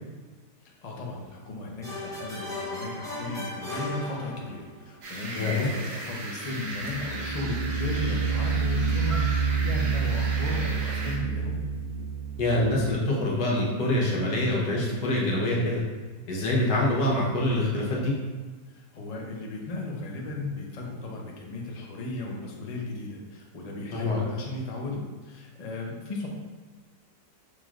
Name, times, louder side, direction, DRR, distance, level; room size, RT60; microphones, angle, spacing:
voice 1, 0.8-11.6 18.7-26.3, left 2 dB, 55° left, -2 dB, 0.4 m, -35 dB
sound 1, 1.8-4.8, left 1 dB, 5° left, 0.6 m, -36 dB
sound 2, 4.4-4.7 6.7-12.9, right 6 dB, 75° right, 1.2 m, -28 dB
sound 3, 5.0-11.2, right 2 dB, 55° right, 0.8 m, -37 dB
voice 2, 5.3-5.7 12.4-15.8 16.3-18.1 23.9-24.2, left 1 dB, 90° left, -3 dB, 1.5 m, -25 dB
5.6 x 3.1 x 2.4 m, 1.3 s
omnidirectional pair, 1.8 m